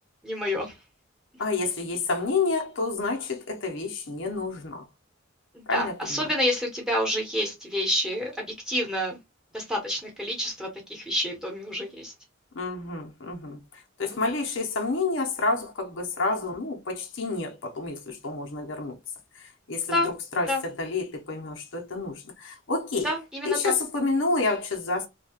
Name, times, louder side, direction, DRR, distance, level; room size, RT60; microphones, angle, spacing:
voice 1, 0.2-0.7 5.5-9.2 9.5-12.1 14.0-14.2 19.9-20.1 20.5-20.6 23.0-23.7, left 1 dB, 5° right, 1.1 m, -28 dB
voice 2, 1.4-4.8 5.7-6.3 12.5-19.0 19.4-23.1 23.4-25.1, left 3 dB, 70° left, 0.8 m, -29 dB
2.9 x 2.3 x 2.8 m
head